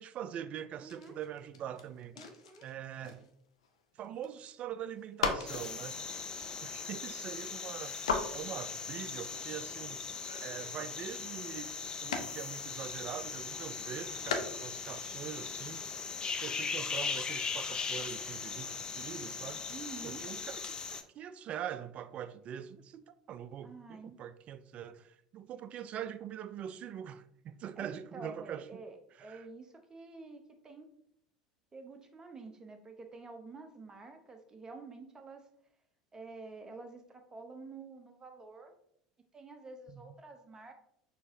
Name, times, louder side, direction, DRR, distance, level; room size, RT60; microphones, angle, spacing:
voice 1, 0.0-2.2 2.6-3.3 4.0-6.0 6.6-10.0 10.4-15.9 16.4-19.6 20.0-28.8 29.2-29.4 39.9-40.0, right 9 dB, 40° right, 0.3 m, -43 dB
voice 2, 0.8-1.2 2.2-2.7 19.7-20.3 23.6-24.2 27.8-30.9 31.7-35.5 36.1-38.7 39.3-40.7, right 3 dB, 25° right, 0.8 m, -49 dB
sound 1, 0.9-4.5 5.0-12.5 12.8-13.3 13.7-14.9 15.2-15.3 15.5-16.1 17.3-17.4, left 5 dB, 75° left, 0.6 m, -40 dB
sound 2, 5.5-21.0, left 5 dB, 25° left, 0.5 m, -39 dB
6.2 x 2.9 x 2.6 m
figure-of-eight pair, 70°, 3 cm